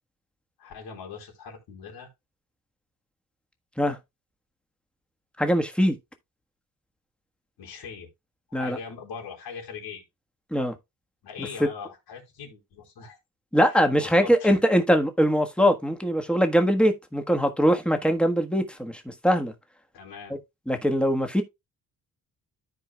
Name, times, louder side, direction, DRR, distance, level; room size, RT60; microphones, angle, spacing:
voice 1, 0.6-2.1 7.6-8.1 8.5-10.0 11.2-13.2 13.7-14.6 19.9-20.4, left 6 dB, 90° left, 3.5 m, -41 dB
voice 2, 5.4-6.0 8.5-8.8 10.5-10.7 13.5-19.5 20.7-21.4, equal, 5° left, 1.4 m, -22 dB
13.5 x 4.8 x 2.3 m
cardioid pair, 105°, 36 cm